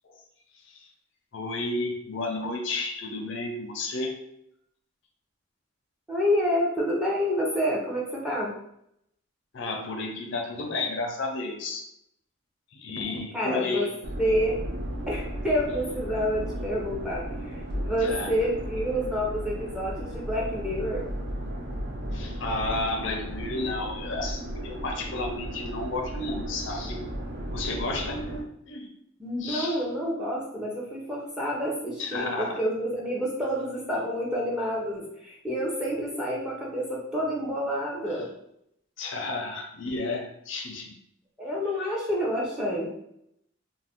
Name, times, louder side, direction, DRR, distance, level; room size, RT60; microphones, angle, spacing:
voice 1, 0.5-0.9 1.3-4.2 9.5-11.8 12.7-13.9 18.0-18.3 22.1-27.0 27.5-28.9 29.4-29.8 32.0-32.6 39.0-41.0, left 2 dB, 65° left, 3 dB, 0.5 m, -32 dB
voice 2, 6.1-8.5 13.3-13.9 14.2-14.6 15.1-21.1 29.2-38.3 41.4-42.9, equal, 5° right, -4 dB, 0.6 m, -28 dB
sound 1, 14.0-28.4, equal, 50° right, 0.4 m, -35 dB
2.5 x 2.1 x 3.5 m, 0.75 s
head